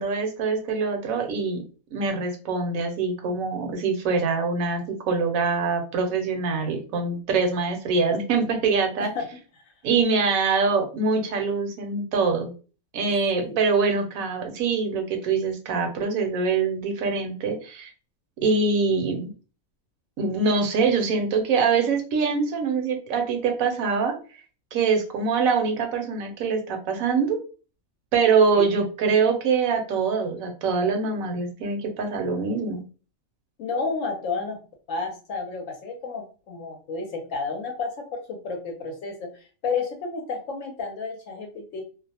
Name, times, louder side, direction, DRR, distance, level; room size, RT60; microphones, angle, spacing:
voice 1, 0.0-1.6 1.9-9.1 9.8-12.5 12.9-17.9 18.4-19.3 20.2-24.1 24.7-27.4 28.1-32.8, right 4 dB, 70° right, 4 dB, 1.0 m, -24 dB
voice 2, 33.6-34.6 34.9-41.8, left 4 dB, 70° left, 3 dB, 0.9 m, -31 dB
2.5 x 2.0 x 2.7 m, 0.36 s
omnidirectional pair, 1.6 m